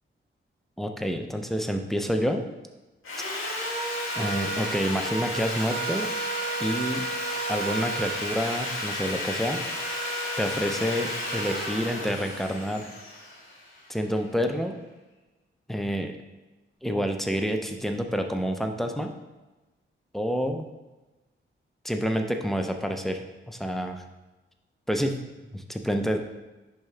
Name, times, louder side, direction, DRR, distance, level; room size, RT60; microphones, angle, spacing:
voice 1, 0.8-2.5 4.2-6.1 6.6-7.1 7.5-9.6 10.4-12.9 13.9-14.8 15.7-16.1 16.8-19.1 20.1-20.7 21.8-23.2 23.5-24.0 24.9-25.2 25.5-26.2, equal, ahead, 5 dB, 0.5 m, -28 dB
Sawing, 3.0-14.1, equal, 85° left, 1.8 m, -31 dB
10.5 x 3.6 x 3.3 m, 1.1 s
wide cardioid pair, 150°, 21 cm